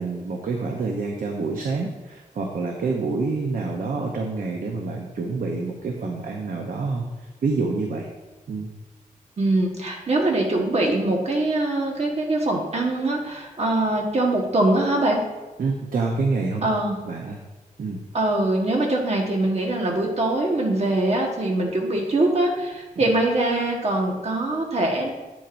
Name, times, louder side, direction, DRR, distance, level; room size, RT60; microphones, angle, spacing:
voice 1, 0.0-7.1 7.4-8.1 8.5-8.7 15.6-16.7 17.0-17.4 17.8-18.0, right 3 dB, 90° right, 1 dB, 0.8 m, -27 dB
voice 2, 9.4-15.2 16.6-17.0 18.1-25.1, right 2 dB, 50° right, 0 dB, 1.4 m, -23 dB
8.8 x 7.2 x 2.6 m, 1.1 s
wide cardioid pair, 150°, 14 cm